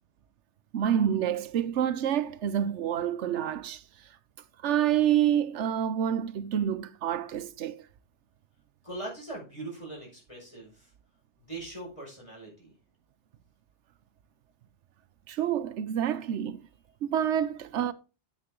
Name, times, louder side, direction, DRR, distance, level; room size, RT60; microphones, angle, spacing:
voice 1, 0.7-3.8 4.6-7.8 15.3-16.6 17.0-17.9, right 10 dB, 90° right, 1.0 m, -27 dB
voice 2, 8.8-10.9 11.4-12.7, right 2 dB, 30° left, 5.6 m, -41 dB
9.5 x 8.5 x 3.7 m
omnidirectional pair, 1.2 m